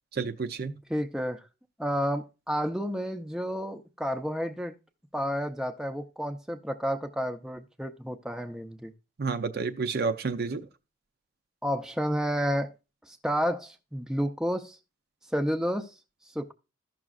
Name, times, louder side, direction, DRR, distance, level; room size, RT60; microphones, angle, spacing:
voice 1, 0.1-0.8 9.2-10.7, right 4 dB, 50° right, 0.5 m, -30 dB
voice 2, 0.9-1.4 1.8-4.7 5.1-8.9 11.6-12.7 13.1-14.8 15.3-15.9 16.3-16.5, equal, 5° right, 0.5 m, -30 dB
15.0 x 6.0 x 2.4 m
head